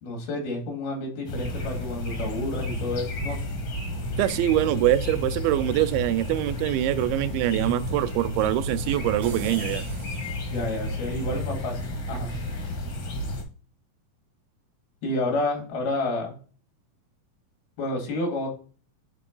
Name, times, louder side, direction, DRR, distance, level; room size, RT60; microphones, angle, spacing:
voice 1, 0.0-3.4 10.5-11.8 12.1-12.3 15.0-16.4 17.8-18.5, left 2 dB, 85° left, 3.8 m, -30 dB
sound 1, 1.3-13.4, left 1 dB, 65° left, 1.1 m, -32 dB
voice 2, 4.2-9.9, right 13 dB, 90° right, 2.4 m, -24 dB
sound 2, 9.2-11.0, right 5 dB, 70° right, 1.4 m, -42 dB
8.7 x 3.7 x 3.8 m
omnidirectional pair, 4.2 m